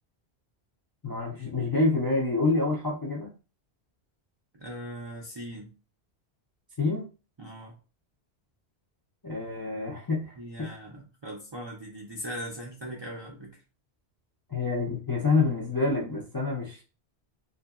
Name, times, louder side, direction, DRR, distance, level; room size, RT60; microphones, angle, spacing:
voice 1, 1.0-3.3 6.8-7.1 9.2-10.7 14.5-16.8, left 3 dB, 35° left, -3 dB, 0.3 m, -27 dB
voice 2, 4.6-5.7 7.4-7.8 10.4-13.5, equal, 45° right, -2 dB, 0.3 m, -39 dB
2.6 x 2.5 x 2.3 m, 0.33 s
omnidirectional pair, 1.1 m